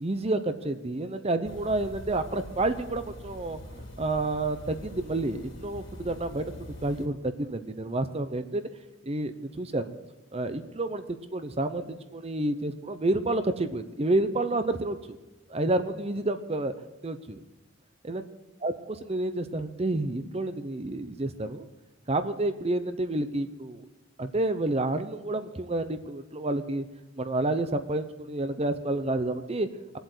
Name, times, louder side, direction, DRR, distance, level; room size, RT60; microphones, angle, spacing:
voice 1, 0.0-3.6 4.0-6.5 6.8-8.6 9.0-9.9 10.3-11.0 11.3-11.8 12.1-15.0 15.5-16.7 17.0-17.4 18.0-18.2 18.6-18.7 19.1-21.7 22.1-23.8 24.2-26.9 27.2-29.7, right 2 dB, 30° right, 10 dB, 0.7 m, -29 dB
sound 1, 1.4-7.1, equal, 75° left, 3.8 m, -44 dB
19.0 x 8.1 x 8.1 m, 1.0 s
head